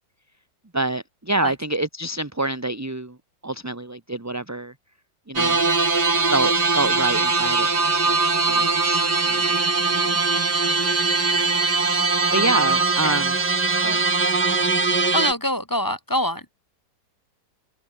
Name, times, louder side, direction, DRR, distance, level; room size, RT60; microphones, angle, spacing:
voice 1, 0.7-3.2 3.4-4.7 5.3-5.6 6.2-8.2 8.5-9.6 10.0-10.2 11.3-11.5 12.3-13.4, right 2 dB, 10° right, 1.1 m, -27 dB
sound 1, 5.4-15.3, right 3 dB, 60° right, 4.5 m, -21 dB
voice 2, 15.1-16.5, left 1 dB, 10° left, 3.7 m, -25 dB
omnidirectional pair, 2.0 m